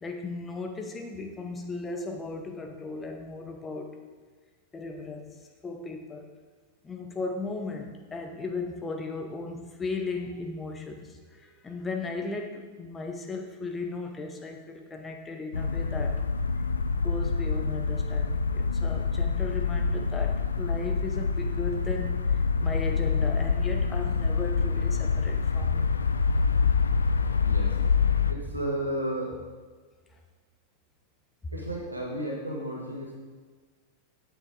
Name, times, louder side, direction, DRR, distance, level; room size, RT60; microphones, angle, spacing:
voice 1, 0.0-4.0 4.7-5.3 5.6-6.3 6.8-16.1 17.0-25.8, left 3 dB, 15° left, 2 dB, 1.0 m, -36 dB
sound 1, 15.5-28.3, left 5 dB, 75° left, 0.3 m, -26 dB
voice 2, 27.4-27.8 28.3-29.3 31.5-33.1, right 1 dB, 85° right, -2 dB, 1.8 m, -33 dB
8.8 x 6.9 x 3.9 m, 1.4 s
figure-of-eight pair, 90°, 0 cm